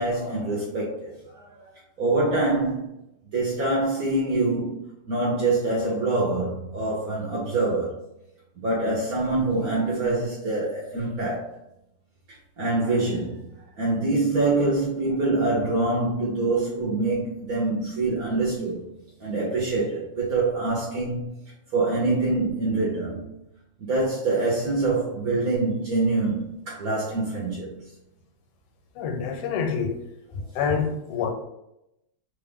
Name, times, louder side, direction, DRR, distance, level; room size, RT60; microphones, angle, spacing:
voice 1, 0.0-1.6 2.0-2.9 3.3-7.9 8.6-11.5 12.6-13.5 13.8-18.9 19.2-21.3 21.7-23.3 23.8-27.7, right 2 dB, 65° right, 0.9 m, -25 dB
voice 2, 29.0-29.9 30.3-31.3, left 6 dB, 85° left, 1.6 m, -27 dB
3.4 x 2.4 x 3.5 m
omnidirectional pair, 2.4 m